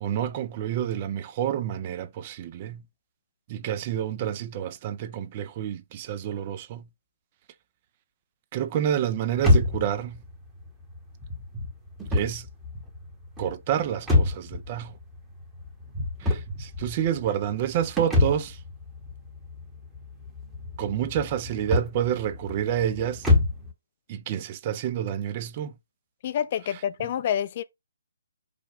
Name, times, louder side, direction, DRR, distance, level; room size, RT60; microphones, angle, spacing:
voice 1, 0.0-2.8 3.5-6.9 8.5-10.2 12.1-12.5 13.4-14.9 16.2-18.6 20.8-23.3 24.1-25.7, right 10 dB, 30° right, 0.5 m, -29 dB
sound 1, 9.4-23.7, left 2 dB, 10° right, 1.0 m, -28 dB
voice 2, 26.2-27.6, left 9 dB, 35° left, 0.5 m, -27 dB
5.0 x 2.2 x 4.8 m
figure-of-eight pair, 135°, 0 cm